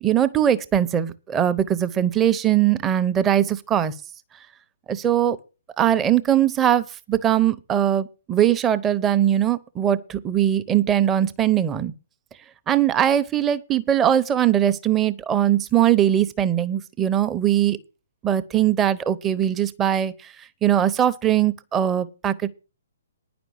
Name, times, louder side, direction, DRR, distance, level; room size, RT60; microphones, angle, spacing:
voice 1, 0.0-3.9 4.9-5.4 5.8-11.9 12.7-17.8 18.2-20.3 20.6-22.5, right 10 dB, 15° right, 0.8 m, -21 dB
10.5 x 6.0 x 8.8 m
figure-of-eight pair, 125°, 0 cm